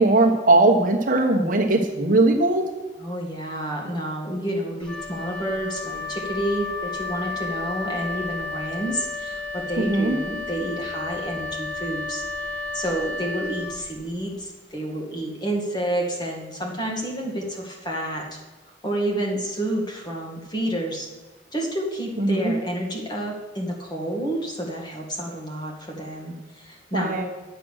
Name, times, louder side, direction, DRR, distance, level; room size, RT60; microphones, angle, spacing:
voice 1, 0.0-2.6 9.8-10.1 22.2-22.5 26.9-27.2, right 2 dB, 45° right, 1 dB, 1.3 m, -19 dB
voice 2, 3.0-18.4 18.8-21.1 21.5-27.2, right 1 dB, 20° left, -1 dB, 2.0 m, -29 dB
Wind instrument woodwind instrument, 4.8-14.3, left 3 dB, 5° left, 1.5 m, -32 dB
10.5 x 7.8 x 6.5 m, 1.1 s
head